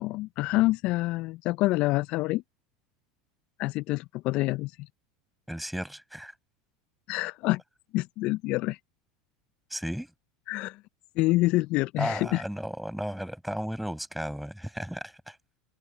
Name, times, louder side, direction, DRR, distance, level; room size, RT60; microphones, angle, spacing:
voice 1, 0.0-2.4 3.6-4.9 7.1-7.6 7.9-8.8 10.5-10.8 11.2-12.4, left 19 dB, 55° left, 0.6 m, -27 dB
voice 2, 5.5-6.3 9.7-10.1 12.0-15.4, equal, ahead, 6.7 m, -34 dB
open air
hypercardioid pair, 80°, 2 cm